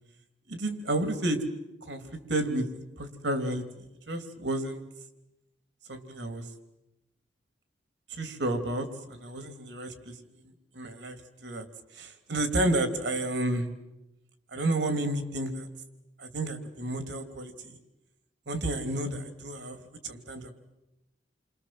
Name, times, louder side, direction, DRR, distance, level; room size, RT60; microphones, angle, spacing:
voice 1, 0.5-1.4 1.9-2.0 2.3-2.7 3.0-3.6 4.1-4.8 5.9-6.5 8.1-10.2 10.7-11.6 11.9-13.7 14.5-15.7 16.2-17.8 18.5-19.8 20.0-20.5, right 1 dB, 80° right, 7 dB, 3.1 m, -31 dB
29.5 x 25.0 x 7.7 m, 0.94 s
head